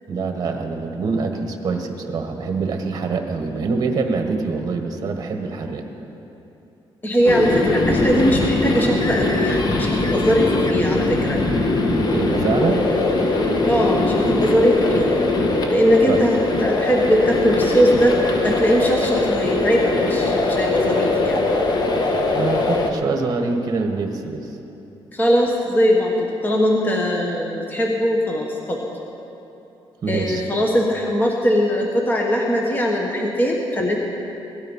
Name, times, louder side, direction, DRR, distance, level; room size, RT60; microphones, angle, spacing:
voice 1, 0.1-5.9 12.1-12.9 16.1-16.2 22.3-24.6 30.0-30.4, right 4 dB, 40° right, 4 dB, 1.5 m, -25 dB
voice 2, 7.0-11.4 13.7-15.2 15.7-18.1 18.4-21.4 25.1-28.8 30.1-34.0, equal, 20° left, 0 dB, 1.3 m, -20 dB
sound 1, 7.2-22.9, left 2 dB, 45° left, 1.3 m, -21 dB
17.5 x 12.5 x 5.6 m, 2.9 s
cardioid pair, 145°, 10 cm